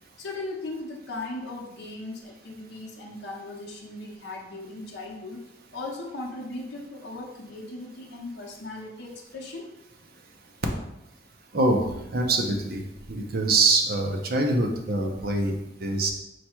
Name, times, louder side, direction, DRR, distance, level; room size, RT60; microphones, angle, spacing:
voice 1, 0.2-5.4 5.7-9.7, left 2 dB, 60° left, -2 dB, 0.8 m, -38 dB
voice 2, 11.5-12.8 13.1-16.1, right 2 dB, 50° right, 2 dB, 0.6 m, -24 dB
4.7 x 2.2 x 4.4 m, 0.88 s
head